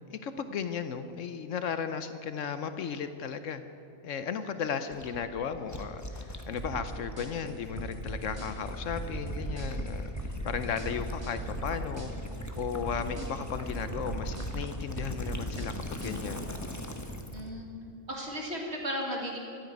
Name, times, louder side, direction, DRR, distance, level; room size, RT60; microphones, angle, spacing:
voice 1, 0.1-3.6 4.0-12.1 12.6-16.4, left 7 dB, 70° left, 10 dB, 1.1 m, -35 dB
Gurgling / Liquid, 4.9-17.5, left 1 dB, 15° left, 1.0 m, -40 dB
sound 1, 6.6-16.2, right 2 dB, 30° right, 3.4 m, -39 dB
voice 2, 17.3-17.7 18.1-19.4, equal, 55° right, 0 dB, 2.3 m, -35 dB
14.5 x 9.4 x 9.4 m, 2.8 s
omnidirectional pair, 1.4 m